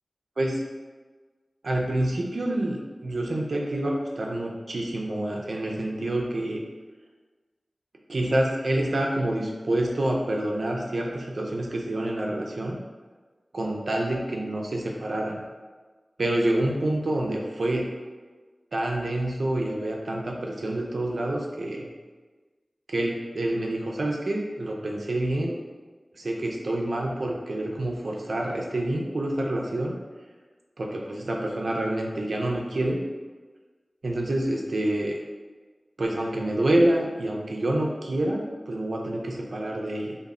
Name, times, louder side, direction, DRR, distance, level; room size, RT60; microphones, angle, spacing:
voice 1, 1.6-6.6 8.1-12.8 13.5-15.4 16.2-17.9 18.7-21.9 22.9-25.6 26.1-30.0 30.8-33.0 34.0-35.2 36.0-40.2, right 1 dB, 75° right, -1 dB, 0.3 m, -27 dB
2.1 x 2.0 x 3.5 m, 1.3 s
wide cardioid pair, 60°, 0 cm